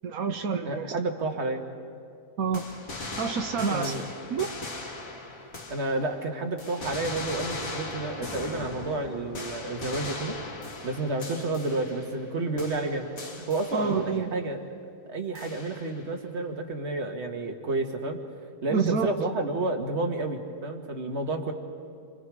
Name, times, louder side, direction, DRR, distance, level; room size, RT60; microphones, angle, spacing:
voice 1, 0.0-1.0 2.4-2.6 3.2-3.9 4.3-4.5 13.7-14.3 18.7-19.1, right 5 dB, 85° right, 6 dB, 1.3 m, -28 dB
voice 2, 0.7-1.6 3.7-4.0 5.7-10.4 10.8-13.1 13.4-14.6 15.1-18.2 18.6-21.5, right 2 dB, 50° right, 4 dB, 1.9 m, -30 dB
sound 1, 2.5-6.2 6.6-12.3 12.6-14.2 15.3-16.1, left 2 dB, 75° left, 2.2 m, -39 dB
28.0 x 25.5 x 4.8 m, 2.3 s
omnidirectional pair, 1.5 m